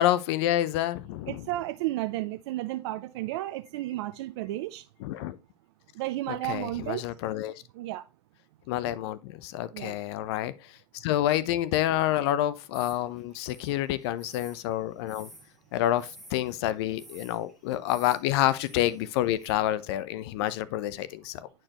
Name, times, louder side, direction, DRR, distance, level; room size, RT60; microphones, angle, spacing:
voice 1, 0.0-1.5 5.0-5.4 6.3-7.6 8.7-15.3 15.7-21.5, left 13 dB, 65° left, 0.7 m, -28 dB
voice 2, 1.3-4.9 5.9-7.0 7.7-8.0 9.7-10.0, right 16 dB, 70° right, 0.5 m, -32 dB
sound 1, 12.7-19.5, right 1 dB, ahead, 1.9 m, -52 dB
9.7 x 4.5 x 2.9 m
hypercardioid pair, 105°, 14 cm